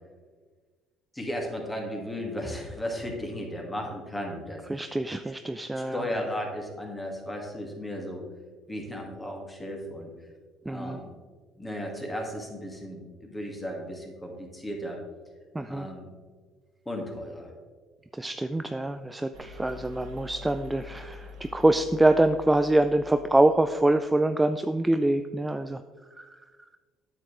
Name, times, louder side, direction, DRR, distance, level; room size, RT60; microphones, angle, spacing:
voice 1, 1.1-4.6 5.8-8.2 8.7-10.1 10.6-11.2 11.6-15.0 15.7-16.1 16.9-17.5, equal, 15° left, 0 dB, 2.1 m, -35 dB
voice 2, 4.7-6.0 10.7-11.0 15.5-15.9 18.2-25.8 26.2-26.3, right 2 dB, 10° right, 8 dB, 0.3 m, -25 dB
sound 1, 19.3-23.8, left 5 dB, 75° right, 1.3 m, -46 dB
8.9 x 7.1 x 3.3 m, 1.4 s
supercardioid pair, 85°, 0 cm